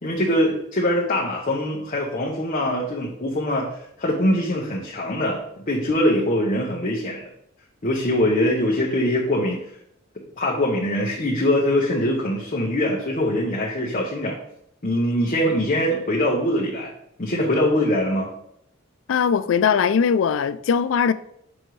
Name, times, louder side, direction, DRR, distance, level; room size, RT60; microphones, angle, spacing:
voice 1, 0.0-3.7 4.0-7.2 7.8-9.6 10.4-14.4 14.8-16.9 17.2-18.3, left 1 dB, 40° left, 1.0 m, -22 dB
voice 2, 19.1-21.1, left 7 dB, 70° left, 0.3 m, -20 dB
6.1 x 5.1 x 3.1 m
head